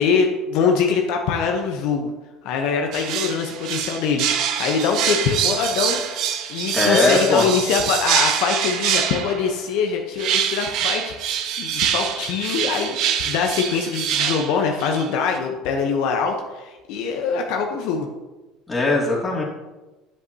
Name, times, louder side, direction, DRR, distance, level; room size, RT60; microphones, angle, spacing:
voice 1, 0.0-2.1 2.4-6.0 6.5-13.0 13.2-18.1, left 5 dB, 70° left, 2 dB, 0.8 m, -23 dB
sound 1, 2.9-9.5 10.2-15.1 15.3-15.4, right 9 dB, 60° right, 0.7 m, -25 dB
voice 2, 6.7-7.5 18.7-19.4, left 2 dB, 15° left, -5 dB, 2.4 m, -19 dB
8.0 x 7.6 x 2.8 m, 1.1 s
supercardioid pair, 100°, 0 cm